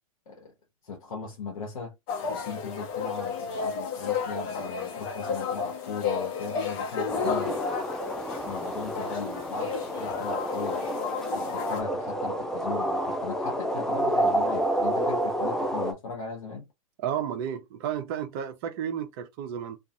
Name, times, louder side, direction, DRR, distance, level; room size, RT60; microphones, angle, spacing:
voice 1, 0.8-1.9 2.2-7.6 8.4-10.8 11.3-16.7, left 4 dB, 75° left, 0.9 m, -38 dB
sound 1, 2.1-11.8, left 6 dB, 45° left, 0.9 m, -32 dB
sound 2, 7.1-15.9, right 1 dB, 5° left, 0.4 m, -29 dB
voice 2, 17.0-19.8, right 9 dB, 45° right, 0.6 m, -32 dB
2.4 x 2.4 x 2.5 m
figure-of-eight pair, 105°, 18 cm